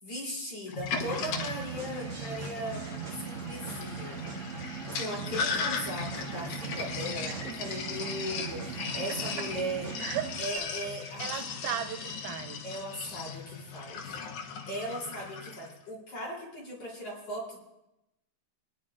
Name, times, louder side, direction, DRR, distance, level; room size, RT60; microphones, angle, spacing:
voice 1, 0.0-2.8 3.2-4.2 4.9-9.9 10.4-11.2 12.6-14.2 14.7-17.6, equal, 50° left, 4.2 m, -38 dB
Sink (filling or washing), 0.7-15.7, left 5 dB, 75° left, 2.4 m, -37 dB
sound 1, 0.9-10.6, right 6 dB, 50° right, 0.9 m, -39 dB
voice 2, 9.1-9.5 10.0-10.7 11.0-12.7, right 10 dB, 90° right, 2.1 m, -37 dB
27.0 x 9.9 x 2.4 m
omnidirectional pair, 3.6 m